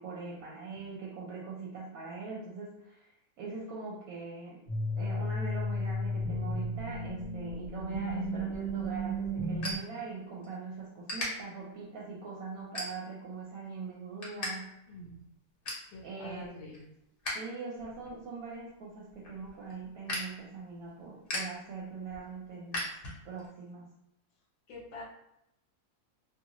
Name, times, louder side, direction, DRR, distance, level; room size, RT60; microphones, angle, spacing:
voice 1, 0.0-4.6 5.0-14.7 16.0-16.6 17.3-22.9 23.2-23.9, right 4 dB, 70° right, -4 dB, 1.0 m, -42 dB
sound 1, 4.7-9.8, equal, 30° right, 1.0 m, -33 dB
sound 2, 8.5-10.5 10.8-11.3 11.8-12.1 12.6-13.3 13.7-14.5 14.8-14.9 15.3-15.9 16.4-17.3 17.7-23.5, left 1 dB, 45° left, 0.9 m, -39 dB
voice 2, 14.9-15.2 15.9-16.8 24.7-25.0, left 1 dB, 75° left, -1 dB, 1.3 m, -46 dB
2.6 x 2.4 x 2.9 m, 0.84 s
omnidirectional pair, 1.7 m